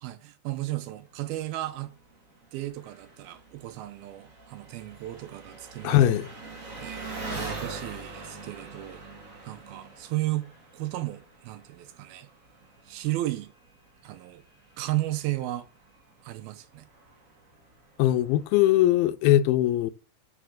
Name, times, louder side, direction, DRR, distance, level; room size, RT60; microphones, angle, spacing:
voice 1, 0.0-1.9 2.5-6.2 6.7-9.0 9.5-10.5 10.7-12.3 12.9-13.5 14.0-14.4 14.8-15.7 16.2-16.9, right 16 dB, 75° right, 2.5 m, -34 dB
Engine, 1.0-19.1, right 3 dB, 45° right, 1.0 m, -44 dB
voice 2, 5.8-6.3 18.0-19.9, left 13 dB, 80° left, 2.3 m, -21 dB
6.5 x 6.1 x 6.3 m
omnidirectional pair, 4.5 m